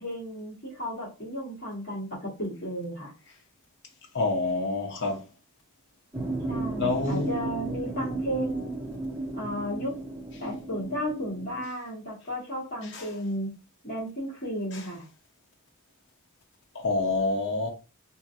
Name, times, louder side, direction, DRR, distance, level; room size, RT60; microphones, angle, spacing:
voice 1, 0.0-3.1 6.5-8.8 9.4-9.9 10.4-13.5 13.8-15.0, equal, 40° left, 1.6 m, -34 dB
voice 2, 4.1-5.2 6.8-7.3 12.9-13.0 16.7-17.7, left 3 dB, 55° left, 0.9 m, -27 dB
sound 1, 6.1-11.7, right 2 dB, 10° right, 0.6 m, -34 dB
2.9 x 2.7 x 2.6 m
head